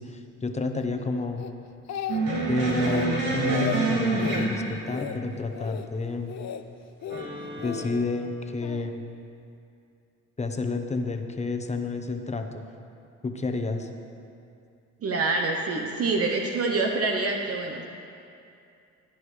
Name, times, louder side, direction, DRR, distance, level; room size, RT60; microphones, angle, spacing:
voice 1, 0.0-1.5 2.5-6.3 7.6-9.0 10.4-12.6 13.2-13.9, left 3 dB, 20° left, 5 dB, 1.0 m, -30 dB
Speech, 1.4-2.4 2.7-3.1 3.4-3.8 4.2-4.5 4.9-5.2 5.5-5.9 6.3-6.6 7.0-7.8 8.6-8.9, left 10 dB, 60° left, 0.6 m, -34 dB
sound 1, 2.1-5.1 7.1-7.8, right 2 dB, 85° right, 2.6 m, -27 dB
voice 2, 15.0-17.8, right 3 dB, 50° right, 1 dB, 1.0 m, -26 dB
16.0 x 10.5 x 3.3 m, 2.5 s
cardioid pair, 90°, 30 cm